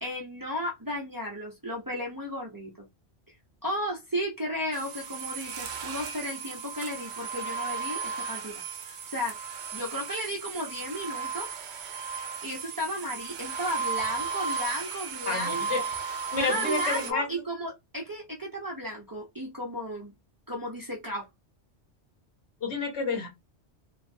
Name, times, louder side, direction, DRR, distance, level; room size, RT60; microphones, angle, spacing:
voice 1, 0.0-2.9 3.6-9.4 9.7-11.5 12.4-15.9 16.4-20.1 20.5-21.2, equal, 25° right, 0.6 m, -34 dB
sound 1, 4.7-17.1, right 5 dB, 75° right, 0.9 m, -35 dB
voice 2, 15.3-15.8 16.3-17.4 22.6-23.3, left 3 dB, 75° left, 1.2 m, -30 dB
3.1 x 2.0 x 2.6 m
omnidirectional pair, 1.2 m